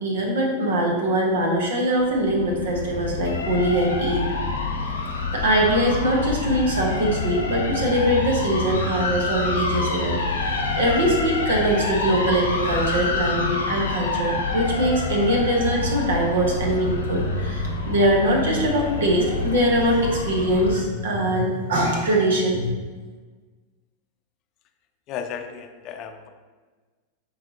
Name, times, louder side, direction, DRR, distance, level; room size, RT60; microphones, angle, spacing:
voice 1, 0.0-4.3 5.1-22.7, right 1 dB, 60° right, 0 dB, 1.2 m, -22 dB
sound 1, 2.0-20.8, left 3 dB, 75° left, 1.0 m, -27 dB
voice 2, 25.1-26.3, left 7 dB, 40° left, 6 dB, 0.7 m, -34 dB
8.3 x 4.2 x 2.9 m, 1.4 s
figure-of-eight pair, 90°, 0 cm